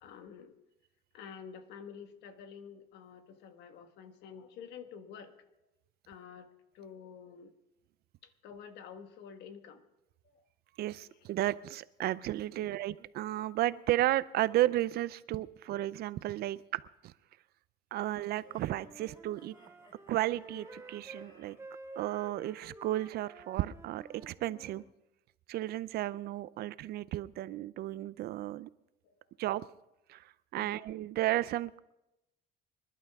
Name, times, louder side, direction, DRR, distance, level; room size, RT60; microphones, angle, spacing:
voice 1, 0.0-0.5 1.1-5.5 6.1-6.5 6.7-7.5 8.4-9.8 12.6-12.8 29.1-29.2 30.5-30.8, left 7 dB, 85° left, 8 dB, 1.5 m, -49 dB
voice 2, 10.8-17.1 17.9-19.5 20.1-21.6 22.0-24.8 25.5-28.7 29.4-29.6 30.1-31.8, right 15 dB, 70° right, 18 dB, 0.5 m, -33 dB
sound 1, 18.3-21.6, left 1 dB, 25° left, 4.3 m, -61 dB
Wind instrument woodwind instrument, 18.4-21.3 21.6-24.9, right 3 dB, 15° right, 1.1 m, -51 dB
26.0 x 11.5 x 3.6 m, 0.90 s
cardioid pair, 110°, 17 cm